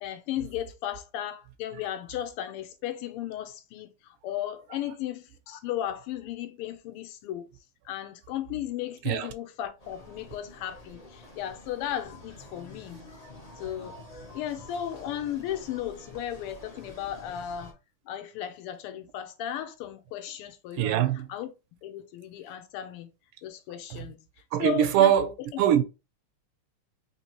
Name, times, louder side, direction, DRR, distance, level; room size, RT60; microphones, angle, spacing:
voice 1, 0.0-7.5 7.9-13.0 13.6-14.0 14.3-17.8 18.1-21.5 21.8-23.1 23.4-24.2 24.6-25.6, left 11 dB, 90° left, 1.6 m, -35 dB
sound 1, 9.8-17.7, left 1 dB, 60° left, 0.4 m, -48 dB
voice 2, 20.8-21.3 24.5-25.3 25.6-25.8, right 10 dB, 80° right, 1.4 m, -22 dB
4.0 x 2.9 x 2.9 m
omnidirectional pair, 2.4 m